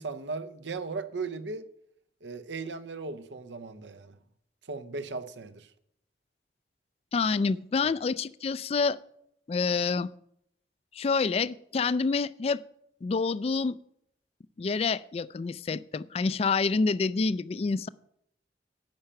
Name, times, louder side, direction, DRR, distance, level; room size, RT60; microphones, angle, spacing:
voice 1, 0.0-1.7 2.2-4.2 4.7-5.7, right 4 dB, 90° right, 0.8 m, -37 dB
voice 2, 7.1-9.0 9.5-10.1 10.9-12.6 13.0-13.8 14.6-17.9, left 4 dB, 35° left, 0.3 m, -27 dB
10.5 x 5.7 x 8.7 m
head